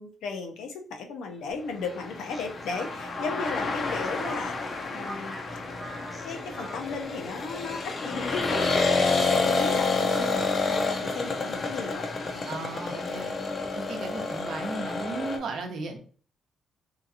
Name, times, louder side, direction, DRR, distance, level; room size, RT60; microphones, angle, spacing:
voice 1, 0.0-5.6 6.2-12.5, left 4 dB, 85° left, 4 dB, 0.6 m, -36 dB
Speech, 1.5-6.9, right 1 dB, 20° right, 0.9 m, -45 dB
sound 1, 1.9-15.4, left 3 dB, 40° left, 0.5 m, -29 dB
voice 2, 12.5-13.4 13.7-16.0, right 3 dB, 65° right, 3 dB, 0.7 m, -35 dB
2.8 x 2.4 x 2.6 m, 0.41 s
cardioid pair, 105°, 0 cm